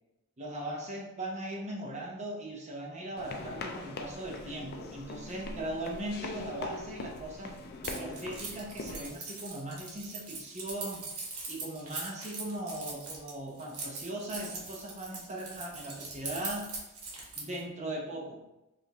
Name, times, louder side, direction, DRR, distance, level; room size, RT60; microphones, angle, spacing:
voice 1, 0.4-7.6 7.9-11.1 11.5-16.7 17.4-18.4, right 1 dB, 30° right, -2 dB, 0.7 m, -39 dB
sound 1, 3.2-9.1, left 3 dB, 45° left, 0.4 m, -42 dB
Keys jangling, 7.8-17.6, right 4 dB, 70° right, 1.1 m, -41 dB
4.8 x 2.5 x 2.8 m, 0.96 s
head